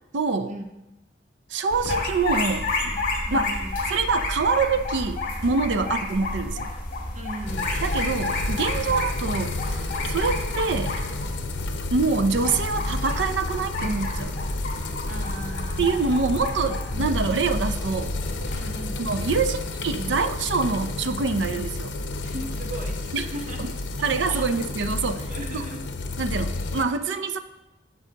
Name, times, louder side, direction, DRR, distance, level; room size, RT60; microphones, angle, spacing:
voice 1, 0.1-0.5 1.5-3.0 3.3-3.5 3.9-6.7 7.8-11.0 11.9-14.4 15.8-18.1 19.0-21.9 23.1-23.3 23.6-23.7 24.0-25.6 26.2-27.4, right 4 dB, 75° right, 10 dB, 0.5 m, -25 dB
sound 1, 1.7-18.5, left 2 dB, 50° left, 1.8 m, -30 dB
voice 2, 3.3-3.8 5.7-5.9 7.1-7.9 15.0-15.8 16.9-17.2 18.5-19.0 22.2-24.4 25.3-25.9 26.3-26.5, right 1 dB, 45° right, 3 dB, 0.8 m, -37 dB
sound 2, 7.5-26.8, left 2 dB, 90° left, 0.7 m, -31 dB
10.0 x 6.3 x 2.8 m, 0.99 s
head